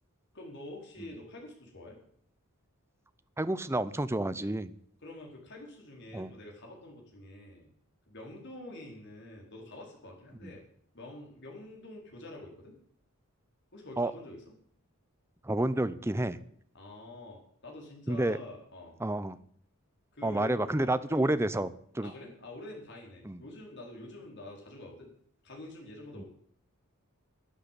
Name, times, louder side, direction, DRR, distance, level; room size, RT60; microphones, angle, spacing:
voice 1, 0.3-2.0 5.0-7.7 8.1-10.6 10.9-12.7 13.7-14.4 16.7-19.0 20.1-21.3 22.0-25.1 25.4-26.3, left 2 dB, 50° left, 0 dB, 4.6 m, -46 dB
voice 2, 3.4-4.7 6.1-6.3 10.4-10.5 14.0-14.1 15.4-16.4 18.1-18.4 19.0-19.4 20.2-21.7 21.9-22.1 23.2-23.4 26.1-26.2, right 1 dB, 10° right, 14 dB, 0.6 m, -29 dB
12.0 x 10.5 x 8.3 m, 0.63 s
head